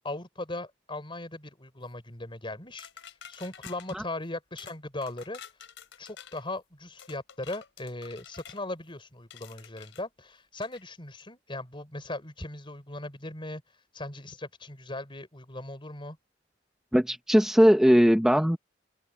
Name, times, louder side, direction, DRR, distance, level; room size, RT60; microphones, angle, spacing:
voice 1, 0.0-2.9 3.3-5.4 6.0-13.6 13.9-16.2, left 2 dB, 25° left, 4.3 m, -38 dB
sound 1, 2.8-4.0 4.6-4.8 5.0-6.4 7.0-8.6 9.3-10.0 10.6-10.8, left 8 dB, 80° left, 3.7 m, -49 dB
voice 2, 16.9-18.6, equal, 5° right, 0.7 m, -20 dB
head